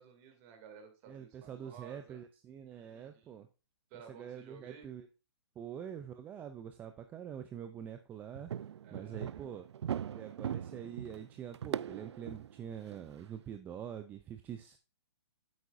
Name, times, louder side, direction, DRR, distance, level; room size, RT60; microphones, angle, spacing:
voice 1, 0.0-2.2 2.7-3.4 3.9-4.9 8.8-9.5, right 7 dB, 30° right, 5 dB, 2.5 m, -55 dB
voice 2, 1.1-3.5 4.1-5.1 5.6-9.7 10.1-14.8, right 9 dB, 10° right, 8 dB, 0.4 m, -45 dB
sound 1, 8.3-13.1, right 9 dB, 75° right, 0.4 m, -40 dB
9.5 x 8.3 x 2.6 m, 0.31 s
hypercardioid pair, 145°, 14 cm